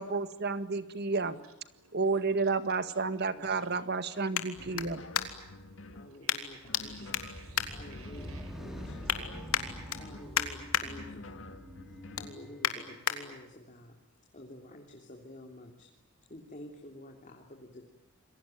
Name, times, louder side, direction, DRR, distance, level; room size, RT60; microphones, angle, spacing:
voice 1, 0.0-1.3 1.9-5.0, right 4 dB, 50° right, 11 dB, 1.8 m, -31 dB
sound 1, 1.8-5.6 6.3-6.8 7.1-8.4 8.8-9.2 9.5-10.9 11.3-11.5 11.9-13.2 13.7-13.8, left 8 dB, 85° left, 3.1 m, -34 dB
voice 2, 1.8-2.2 3.5-3.8 5.3-10.3 11.3-11.4 11.9-12.2, right 4 dB, 80° right, 9 dB, 5.4 m, -59 dB
voice 3, 3.4-3.8 5.9-9.2 9.9-11.6 11.9-14.0 14.3-15.9 16.3-17.9, left 1 dB, 35° left, 2 dB, 3.2 m, -50 dB
sound 2, 4.6-6.1 6.6-8.2 8.7-10.3 10.8-12.4, left 2 dB, 65° left, 2.1 m, -49 dB
sound 3, 6.6-13.1, equal, ahead, 5.3 m, -46 dB
28.5 x 23.0 x 9.2 m, 0.93 s
head